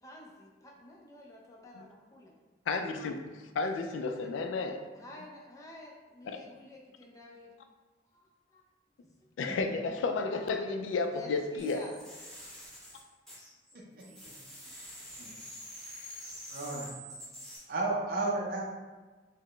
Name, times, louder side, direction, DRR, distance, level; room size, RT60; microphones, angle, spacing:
voice 1, 0.0-2.3 4.0-7.5 8.1-8.3 8.5-8.6 11.1-12.0 14.0-14.7 16.8-17.4, left 1 dB, 15° left, -2 dB, 0.5 m, -51 dB
voice 2, 2.7-4.9 6.3-6.4 9.4-11.8, left 3 dB, 90° left, 6 dB, 0.3 m, -32 dB
sound 1, 11.6-13.7 14.0-17.6, equal, ahead, 0.9 m, -47 dB
voice 3, 13.7-14.0 14.7-14.9 15.2-15.3 16.5-16.9 17.7-18.6, right 2 dB, 50° right, -3 dB, 0.5 m, -33 dB
3.9 x 2.1 x 3.1 m, 1.3 s
head